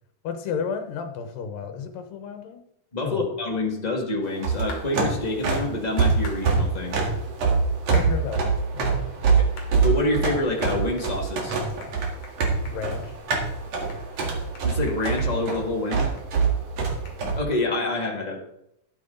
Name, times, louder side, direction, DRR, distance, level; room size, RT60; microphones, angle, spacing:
voice 1, 0.2-2.6 3.0-3.3 7.9-9.3 12.7-13.2, left 6 dB, 80° left, 7 dB, 2.8 m, -32 dB
voice 2, 2.9-7.0 9.3-9.5 9.8-11.6 14.6-16.1 17.4-18.4, left 2 dB, 20° left, 0 dB, 1.1 m, -27 dB
sound 1, 4.3-17.4, right 4 dB, 50° right, 2.8 m, -24 dB
sound 2, 4.7-4.9 6.2-6.4 7.9-8.1 8.7-8.8 9.6-9.7 10.2-10.3 11.0-11.1 11.4-11.5 11.8-12.0 12.2-12.4 12.7-13.1 13.5-13.6 13.9-16.3 16.5-16.6 17.1-17.2, left 3 dB, 55° left, 3.3 m, -42 dB
12.0 x 9.6 x 3.9 m, 0.80 s
omnidirectional pair, 4.0 m